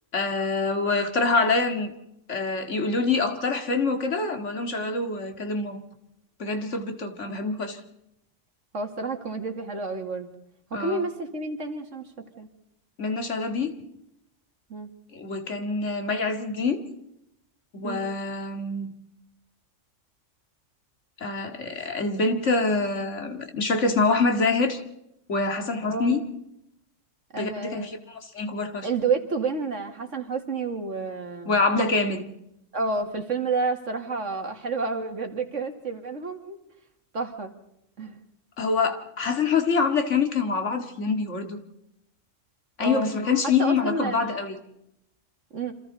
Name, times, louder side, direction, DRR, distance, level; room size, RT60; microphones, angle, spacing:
voice 1, 0.1-1.9 2.3-5.8 6.4-7.8 10.7-11.1 13.0-13.7 15.1-16.8 17.7-18.9 21.2-24.8 25.3-26.2 27.4-28.9 31.5-32.3 38.6-41.6 42.8-44.6, left 4 dB, 70° left, 2.4 m, -25 dB
voice 2, 8.7-10.3 10.7-12.5 14.7-14.9 17.8-18.0 25.8-26.2 27.3-27.9 28.8-31.6 32.7-36.6 37.1-37.5 38.0-38.2 42.8-43.1 43.6-44.2 45.5-45.7, right 4 dB, 70° right, 2.6 m, -30 dB
28.5 x 26.0 x 4.1 m
omnidirectional pair, 1.3 m